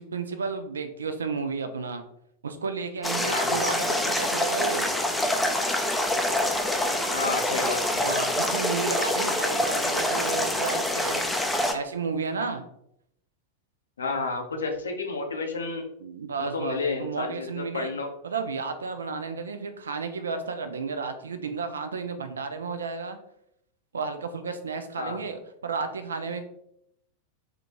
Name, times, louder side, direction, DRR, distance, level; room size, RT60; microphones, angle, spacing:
voice 1, 0.0-2.0 2.4-4.9 8.0-11.2 11.7-12.7 16.0-17.9 18.2-23.2 23.9-26.4, right 5 dB, 70° right, 8 dB, 0.3 m, -32 dB
sound 1, 3.0-11.7, left 1 dB, 5° left, 0.4 m, -26 dB
voice 2, 3.2-3.6 7.1-8.2 14.0-15.8 16.4-18.1 25.0-25.2, left 4 dB, 70° left, 4 dB, 0.5 m, -31 dB
3.6 x 2.2 x 2.8 m, 0.74 s
figure-of-eight pair, 90°, 0 cm